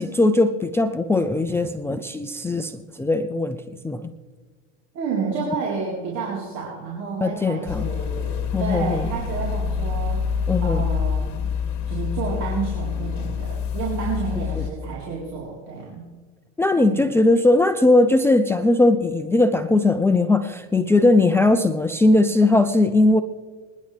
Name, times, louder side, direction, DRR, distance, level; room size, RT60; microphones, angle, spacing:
voice 1, 0.0-3.6 3.8-4.1 7.2-7.9 8.5-9.1 10.5-10.8 14.6-14.7 16.6-23.2, left 2 dB, 5° left, 8 dB, 0.5 m, -19 dB
voice 2, 4.9-11.5 11.9-16.0 16.8-17.0, right 5 dB, 50° right, -4 dB, 4.1 m, -30 dB
sound 1, 7.6-14.7, left 7 dB, 50° left, 2.2 m, -26 dB
27.0 x 10.5 x 3.4 m, 1.5 s
supercardioid pair, 115°, 37 cm